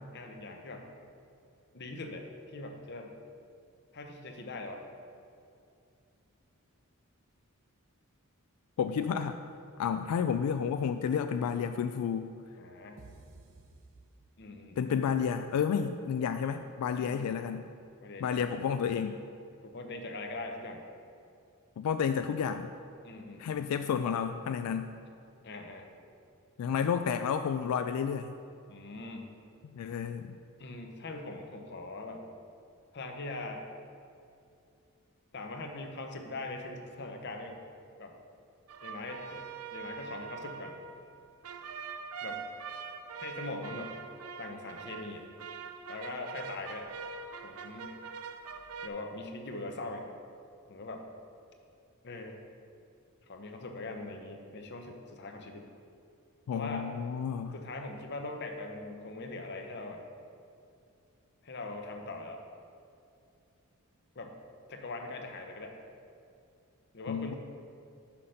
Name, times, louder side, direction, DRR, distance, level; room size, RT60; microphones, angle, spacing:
voice 1, 0.1-0.9 1.7-3.1 3.9-4.8 12.6-13.1 14.4-15.1 16.9-17.3 18.0-18.4 19.6-20.9 23.0-23.7 25.4-25.9 28.7-29.3 30.6-32.3 32.9-33.6 35.3-37.6 38.0-38.2 38.8-39.4 39.7-40.8 42.2-42.4 43.2-43.9 44.4-45.2 45.9-46.9 47.4-48.0 48.8-50.1 50.7-51.1 52.0-52.4 53.3-55.7 56.5-56.9 57.5-60.0 61.4-62.4 64.1-64.4 64.7-65.8 66.9-67.3, left 2 dB, 50° left, 4 dB, 0.8 m, -41 dB
voice 2, 8.8-9.4 9.8-12.3 14.8-17.7 18.2-19.2 21.8-22.7 23.4-25.0 26.6-28.4 29.7-30.4 56.5-57.5 67.1-67.3, left 7 dB, 85° left, 10 dB, 0.3 m, -31 dB
sound 1, 13.0-14.8, right 3 dB, 60° right, 0.8 m, -54 dB
sound 2, 38.7-48.9, right 5 dB, 80° right, 0.5 m, -43 dB
5.8 x 5.6 x 6.4 m, 2.5 s
head